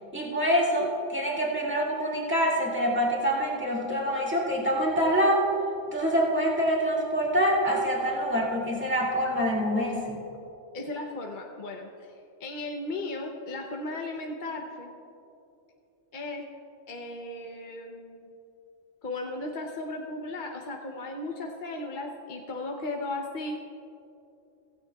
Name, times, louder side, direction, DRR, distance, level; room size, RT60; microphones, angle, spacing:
voice 1, 0.1-5.4 5.9-10.2, equal, 10° right, -4 dB, 2.0 m, -26 dB
voice 2, 10.7-12.1 12.4-14.9 16.1-16.4 16.9-18.3 19.0-23.6, left 2 dB, 45° left, 1 dB, 0.9 m, -36 dB
16.0 x 16.0 x 2.3 m, 2.7 s
omnidirectional pair, 1.3 m